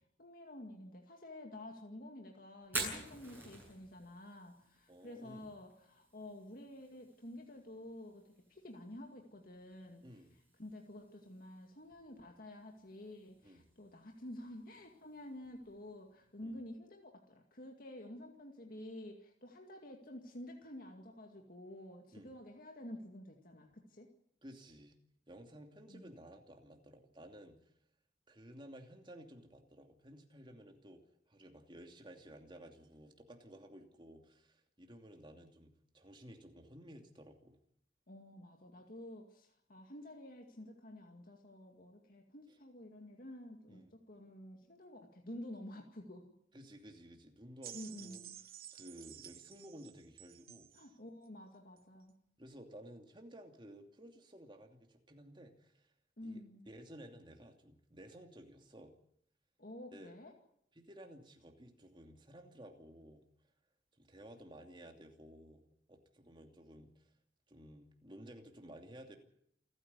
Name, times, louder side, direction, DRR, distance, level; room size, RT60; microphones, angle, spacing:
voice 1, 0.2-10.0 10.6-24.1 25.9-26.1 38.1-46.3 47.7-48.4 50.7-52.1 56.2-56.7 59.6-60.3, left 1 dB, 55° left, 2 dB, 2.3 m, -50 dB
Fire, 2.6-16.5, right 2 dB, 10° right, 7.8 m, -50 dB
voice 2, 4.9-5.5 10.0-10.4 13.4-13.7 16.4-16.6 22.1-22.3 24.4-25.0 25.3-27.6 28.3-31.0 31.3-37.6 43.7-43.9 46.5-48.2 48.7-50.7 52.4-55.8 56.2-58.9 59.9-60.1 60.8-63.2 64.0-65.6 65.9-67.0 67.5-69.2, equal, 25° right, 3 dB, 2.7 m, -55 dB
sound 1, 47.6-50.9 51.8-51.9, right 12 dB, 55° right, 1.2 m, -52 dB
28.5 x 9.8 x 9.8 m, 0.72 s
head